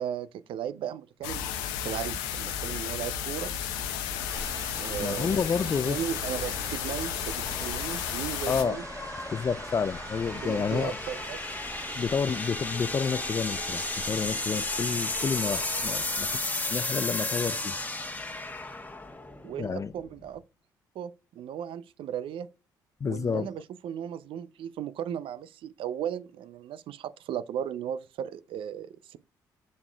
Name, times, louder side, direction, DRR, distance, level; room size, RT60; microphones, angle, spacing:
voice 1, 0.0-1.5 1.8-3.5 4.8-5.4 5.9-8.8 10.3-11.4 19.4-20.4 21.0-22.5 23.0-29.2, right 9 dB, 60° right, 0.5 m, -36 dB
sound 1, 1.2-8.6, left 9 dB, 80° left, 0.8 m, -33 dB
sound 2, 1.4-20.4, left 2 dB, 15° left, 1.1 m, -35 dB
sound 3, 4.3-16.4, right 2 dB, 35° right, 1.7 m, -43 dB
voice 2, 5.0-6.0 8.5-8.8 9.3-11.0 12.0-17.8 19.6-19.9 23.0-23.5, left 6 dB, 35° left, 0.4 m, -30 dB
7.2 x 6.4 x 2.2 m
hypercardioid pair, 50°, 10 cm